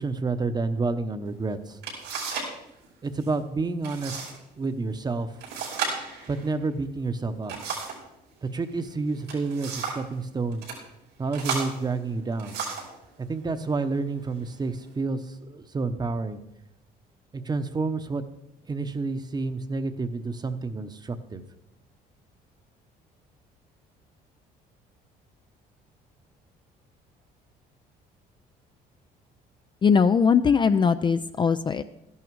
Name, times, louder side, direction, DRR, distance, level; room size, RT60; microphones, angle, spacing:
voice 1, 0.0-1.8 3.0-4.2 4.6-5.3 6.3-7.5 8.4-10.7 11.2-12.6 13.3-16.4 17.3-18.2 18.7-21.4, right 3 dB, 25° right, 10 dB, 0.9 m, -29 dB
sound 1, 1.3-1.4 1.8-2.6 2.8-3.3 3.8-4.3 4.6-4.7 5.4-8.1 9.0-10.1 10.5-10.8 11.3-13.0 13.7-13.9 14.4-14.9, right 5 dB, 90° right, 5.4 m, -34 dB
voice 2, 29.8-31.8, left 6 dB, 30° left, 11 dB, 0.4 m, -20 dB
13.5 x 11.0 x 4.7 m, 0.82 s
cardioid pair, 110°, 17 cm